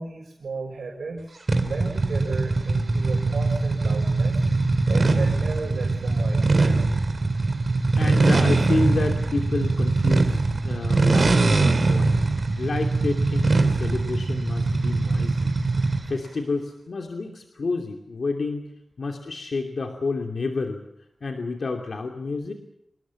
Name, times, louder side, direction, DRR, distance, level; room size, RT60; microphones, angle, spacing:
voice 1, 0.0-4.4 4.9-6.8, right 3 dB, 80° right, 0 dB, 6.0 m, -35 dB
sound 1, 1.5-16.2, right 3 dB, 40° right, 3.1 m, -22 dB
voice 2, 7.9-12.1 12.6-15.5 16.1-18.7 19.0-20.8 21.2-22.5, left 3 dB, 60° left, 3 dB, 2.8 m, -29 dB
26.5 x 20.5 x 7.2 m, 0.77 s
wide cardioid pair, 115°, 0 cm